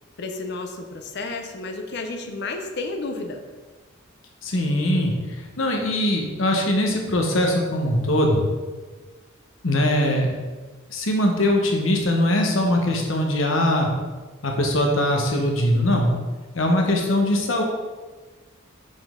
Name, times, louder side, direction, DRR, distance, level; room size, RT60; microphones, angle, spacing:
voice 1, 0.2-3.4, left 3 dB, 55° left, 5 dB, 0.6 m, -31 dB
voice 2, 4.4-8.4 9.6-10.4 10.9-13.9 14.4-16.1 16.5-17.6, left 1 dB, 75° left, 2 dB, 1.1 m, -21 dB
5.7 x 5.3 x 3.7 m, 1.3 s
head